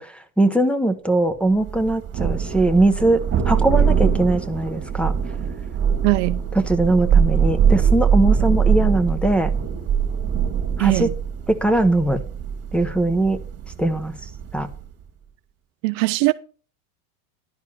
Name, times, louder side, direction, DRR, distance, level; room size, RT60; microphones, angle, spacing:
voice 1, 0.0-5.1 6.5-9.5 10.8-11.1 11.5-12.2 12.7-13.4 13.8-14.2 14.5-14.7, right 2 dB, 5° left, 0.8 m, -20 dB
Thunder, 1.7-14.9, right 7 dB, 30° right, 2.1 m, -22 dB
voice 2, 6.0-6.4 10.8-11.0 15.8-16.3, right 22 dB, 55° right, 0.5 m, -19 dB
11.0 x 4.6 x 6.7 m
supercardioid pair, 120°, 46 cm